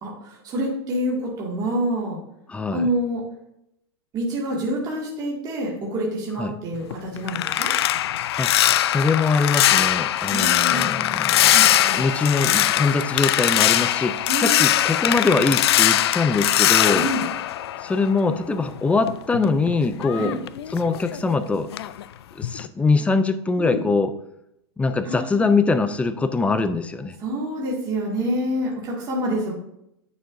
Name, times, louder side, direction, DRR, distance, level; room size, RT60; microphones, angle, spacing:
voice 1, 0.0-2.2 2.7-3.2 4.1-7.7 10.3-11.0 11.5-12.0 14.3-14.6 16.8-17.2 20.1-20.4 23.6-23.8 25.0-25.4 27.2-29.5, equal, 30° right, -4 dB, 2.1 m, -27 dB
voice 2, 2.5-2.9 6.4-6.5 8.4-8.5 8.8-17.1 17.8-20.4 20.7-21.7 22.4-24.1 24.8-27.2, left 3 dB, 10° left, 11 dB, 0.4 m, -23 dB
sound 1, 6.7-18.4 18.7-21.4 21.7-22.0 22.4-22.7, left 12 dB, 75° left, 0.4 m, -21 dB
9.3 x 6.3 x 2.6 m, 0.78 s
hypercardioid pair, 120°, 14 cm